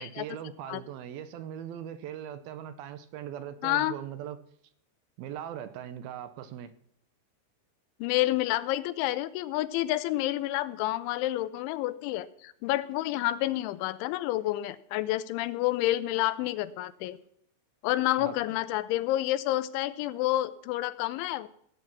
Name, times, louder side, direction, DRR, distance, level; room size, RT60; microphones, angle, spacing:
voice 1, 0.0-4.4 5.2-6.7 18.2-18.4, right 10 dB, 75° right, 11 dB, 2.3 m, -40 dB
voice 2, 3.6-4.0 8.0-17.2 17.8-21.5, left 15 dB, 90° left, 14 dB, 3.1 m, -29 dB
16.5 x 9.4 x 6.0 m, 0.66 s
omnidirectional pair, 5.3 m